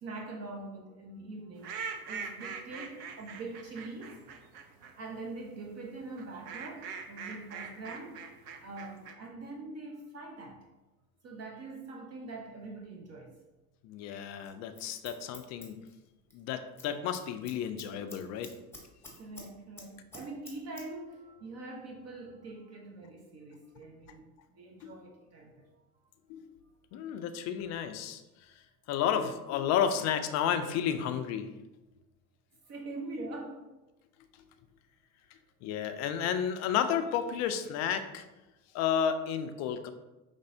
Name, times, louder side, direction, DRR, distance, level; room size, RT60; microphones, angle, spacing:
voice 1, 0.0-4.3 5.0-8.3 8.6-10.6 11.2-13.4 19.2-24.3 24.5-25.7 32.6-33.7, right 2 dB, 35° right, 1 dB, 0.7 m, -43 dB
sound 1, 1.6-4.9 6.2-9.1, right 6 dB, 80° right, 0.7 m, -42 dB
voice 2, 13.8-15.8 16.3-18.5 24.8-24.9 26.3-26.6 26.9-28.2 28.9-31.5 35.6-38.2 38.7-39.9, left 8 dB, 40° left, 9 dB, 0.4 m, -32 dB
Scissors, 14.4-16.4 16.7-16.9 17.1-19.5 19.8-20.8 21.1-21.2, left 2 dB, 5° left, 1.1 m, -49 dB
5.2 x 3.3 x 2.6 m, 1.0 s
hypercardioid pair, 85°, 47 cm